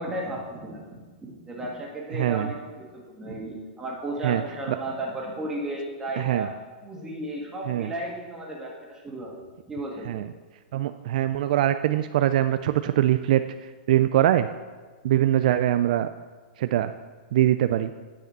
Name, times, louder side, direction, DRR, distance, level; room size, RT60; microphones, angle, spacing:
voice 1, 0.0-6.5 6.8-10.2, right 1 dB, 10° right, -2 dB, 1.9 m, -34 dB
voice 2, 2.1-2.5 4.2-4.4 4.7-4.8 6.2-6.5 7.7-7.9 10.1-10.3 10.7-14.5 15.0-16.1 16.6-16.9 17.3-17.9, right 12 dB, 60° right, 10 dB, 0.4 m, -23 dB
9.5 x 4.9 x 7.5 m, 1.4 s
hypercardioid pair, 150°, 5 cm